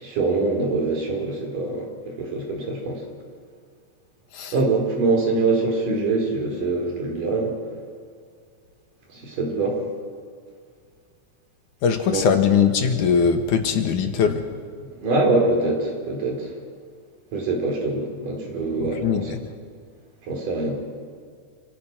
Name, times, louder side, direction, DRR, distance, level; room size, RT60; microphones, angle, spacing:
voice 1, 0.0-1.9 2.2-3.0 4.5-7.5 9.1-9.8 12.1-12.2 14.8-16.5 17.3-19.2 20.3-20.8, right 3 dB, 85° right, 1 dB, 6.0 m, -24 dB
voice 2, 11.8-14.4 18.8-19.4, left 6 dB, 75° left, 5 dB, 3.1 m, -21 dB
28.0 x 26.5 x 6.2 m, 2.1 s
omnidirectional pair, 3.7 m